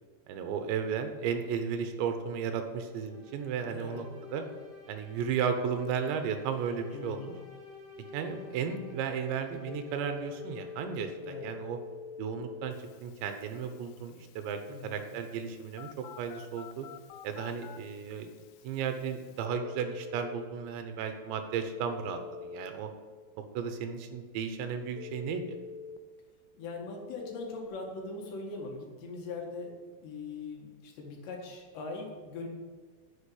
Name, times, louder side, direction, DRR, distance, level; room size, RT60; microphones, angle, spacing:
voice 1, 0.3-4.1 4.3-4.4 4.9-7.3 8.1-11.8 12.2-12.7 13.0-16.9 17.2-18.3 18.6-22.9 23.5-25.6, right 7 dB, 80° right, 7 dB, 3.1 m, -34 dB
sound 1, 2.9-11.3, left 7 dB, 35° right, 2.3 m, -50 dB
voice 2, 3.7-4.0 6.9-7.3 11.2-11.5 14.7-15.0 26.6-32.5, left 3 dB, 70° left, 1 dB, 3.8 m, -41 dB
Telephone, 9.7-20.5 21.7-22.7 25.0-26.0 27.2-27.7, left 6 dB, 90° left, 3.1 m, -47 dB
10.0 x 7.5 x 8.5 m, 1.5 s
omnidirectional pair, 5.3 m